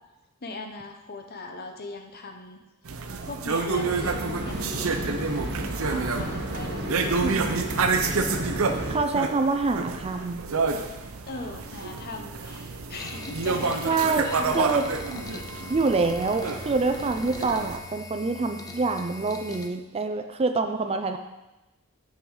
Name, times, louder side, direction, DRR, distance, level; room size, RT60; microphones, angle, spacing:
voice 1, 0.4-2.6 3.2-7.8 11.3-14.8 15.3-15.8, left 3 dB, 45° left, 4 dB, 0.9 m, -39 dB
sound 1, 2.8-17.8, right 4 dB, 75° right, 0.7 m, -29 dB
sound 2, 3.7-9.0, right 1 dB, 55° right, 1.2 m, -32 dB
voice 2, 7.2-7.6 8.9-10.4 13.9-14.2 14.5-14.8 15.7-21.2, right 3 dB, 30° right, 7 dB, 0.4 m, -26 dB
sound 3, 12.9-19.7, left 3 dB, 15° left, 0.6 m, -42 dB
7.0 x 6.4 x 4.8 m, 1.0 s
head